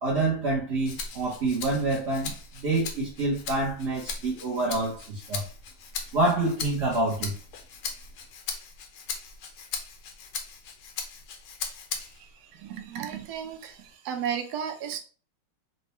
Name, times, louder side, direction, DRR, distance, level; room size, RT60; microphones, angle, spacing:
voice 1, 0.0-5.4 6.1-7.4, right 2 dB, 50° right, 0.8 m, -27 dB
Rattle (instrument), 0.8-12.3 12.7-13.9, left 5 dB, 70° left, 1.1 m, -39 dB
voice 2, 12.6-13.8 14.0-15.0, right 8 dB, 80° right, 0.9 m, -33 dB
4.2 x 2.2 x 3.0 m
omnidirectional pair, 2.3 m